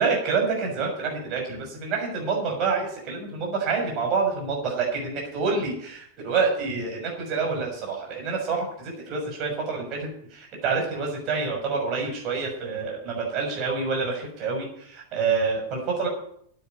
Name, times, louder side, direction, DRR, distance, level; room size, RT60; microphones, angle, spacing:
voice 1, 0.0-16.1, right 4 dB, 40° right, 0 dB, 6.4 m, -27 dB
9.3 x 9.2 x 9.4 m, 0.67 s
figure-of-eight pair, 90°, 0 cm